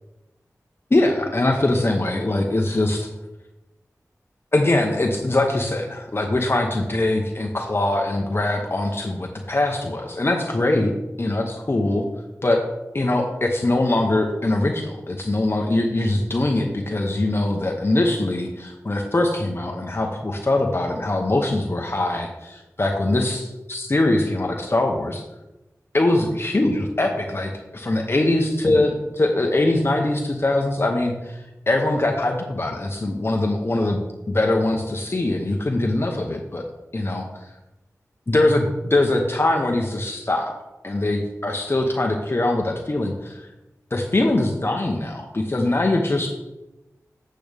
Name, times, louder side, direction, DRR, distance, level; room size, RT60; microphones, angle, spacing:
voice 1, 0.9-3.1 4.5-10.9 11.2-12.0 12.4-12.6 12.9-25.2 25.9-34.0 34.3-36.7 36.9-37.4 38.3-40.5 40.8-43.5 43.9-46.3, left 2 dB, 40° left, 2 dB, 0.9 m, -22 dB
8.6 x 7.6 x 3.5 m, 0.99 s
wide cardioid pair, 65°, 6 cm